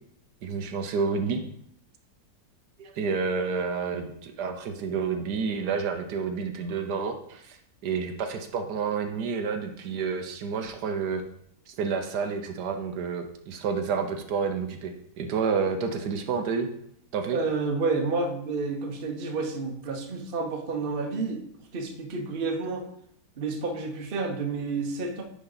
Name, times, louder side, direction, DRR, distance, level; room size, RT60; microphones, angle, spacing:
voice 1, 0.4-1.4 2.8-11.2 11.7-16.7 17.1-17.4, right 5 dB, 75° right, 6 dB, 1.3 m, -29 dB
voice 2, 17.3-21.5 21.7-22.9 23.4-25.2, right 3 dB, 40° right, 4 dB, 0.9 m, -30 dB
9.9 x 4.1 x 3.9 m, 0.70 s
omnidirectional pair, 1.8 m